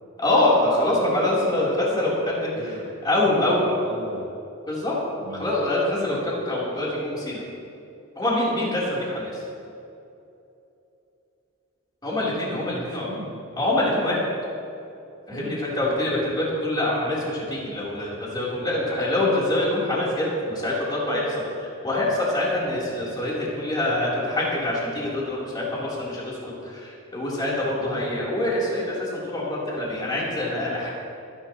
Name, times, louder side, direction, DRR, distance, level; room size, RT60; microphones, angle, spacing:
voice 1, 0.2-2.5 3.0-3.6 4.7-5.0 5.3-7.4 8.2-9.4 12.0-13.0 13.6-14.2 15.3-30.9, left 1 dB, 20° left, -7 dB, 3.9 m, -25 dB
voice 2, 2.5-2.9 3.2-4.3 5.2-5.5 12.5-13.4 15.3-15.6 27.8-28.1, right 1 dB, 60° right, -6 dB, 1.7 m, -38 dB
26.5 x 11.0 x 3.1 m, 2.8 s
head